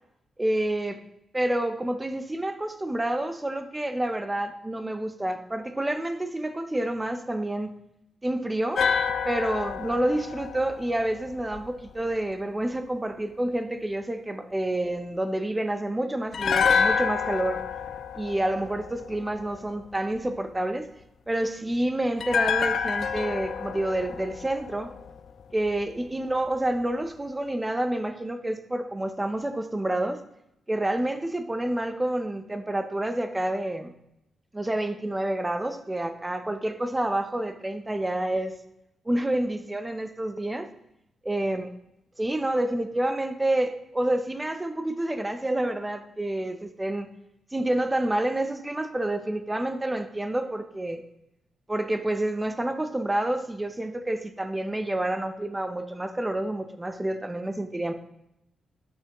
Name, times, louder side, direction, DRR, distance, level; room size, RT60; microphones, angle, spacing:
voice 1, 0.4-1.0 1.3-7.7 8.2-8.9 9.2-17.6 18.1-20.9 21.3-24.9 25.5-30.2 30.7-33.9 34.5-38.6 39.1-40.7 41.2-41.7 42.2-47.1 47.5-51.0 51.7-57.9, right 1 dB, 15° right, 8 dB, 0.5 m, -28 dB
sound 1, 8.7-11.9 16.3-19.5 22.2-25.4 25.7-25.8, left 6 dB, 55° left, 0.3 m, -28 dB
6.7 x 5.8 x 2.9 m, 0.83 s
cardioid pair, 125°, 0 cm